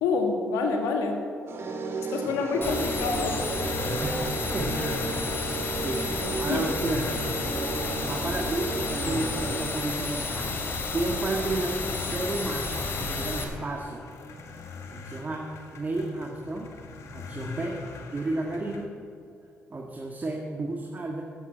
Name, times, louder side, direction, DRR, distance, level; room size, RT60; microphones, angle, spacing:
voice 1, 0.0-1.2 2.1-3.4 5.1-5.2 6.5-6.6, left 4 dB, 90° left, 3 dB, 1.9 m, -27 dB
sound 1, 1.5-9.6, right 4 dB, 55° right, 1.9 m, -34 dB
voice 2, 2.0-2.8 4.0-5.1 5.7-7.3 8.0-14.0 14.9-15.5 15.7-16.7 17.1-18.9 19.7-21.2, right 2 dB, 35° right, 0 dB, 1.8 m, -32 dB
sound 2, 2.6-13.4, left 3 dB, 45° left, 2.7 m, -31 dB
sound 3, 3.0-18.8, left 4 dB, 70° left, 1.6 m, -42 dB
11.5 x 8.4 x 8.4 m, 2.5 s
supercardioid pair, 60°, 5 cm